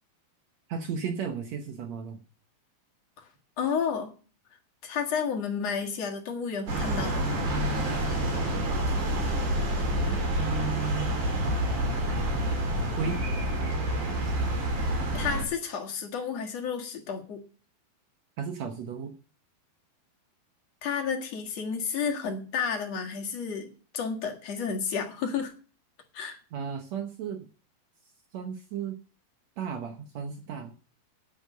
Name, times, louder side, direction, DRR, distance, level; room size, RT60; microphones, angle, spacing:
voice 1, 0.7-2.2 10.3-11.1 13.0-13.2 18.4-19.1 26.5-27.5 28.3-29.0 29.6-30.7, right 7 dB, 75° right, 6 dB, 1.6 m, -34 dB
voice 2, 3.6-4.1 4.8-7.4 15.1-17.4 20.8-25.5 26.1-26.4, left 6 dB, 50° left, 3 dB, 2.5 m, -31 dB
sound 1, 6.7-15.4, right 1 dB, 55° right, 4.8 m, -28 dB
9.8 x 9.2 x 6.5 m, 0.37 s
omnidirectional pair, 4.3 m